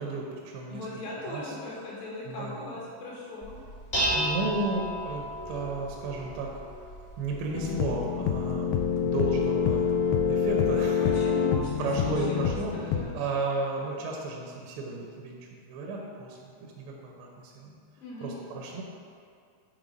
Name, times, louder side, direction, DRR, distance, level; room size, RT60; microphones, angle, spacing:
voice 1, 0.0-0.9 1.2-1.5 2.3-2.8 4.1-6.5 7.2-9.9 10.3-11.0 11.8-17.8 18.2-18.8, right 3 dB, 85° right, -1 dB, 3.0 m, -34 dB
voice 2, 0.7-3.5 11.0-12.5 12.9-13.1 18.0-18.4, left 2 dB, 70° left, -5 dB, 2.6 m, -39 dB
Dishes pots and pans, 3.4-10.5, equal, 40° left, 0.8 m, -35 dB
sound 1, 7.5-13.0, left 7 dB, 90° left, 2.1 m, -26 dB
9.6 x 3.6 x 5.1 m, 2.3 s
omnidirectional pair, 4.8 m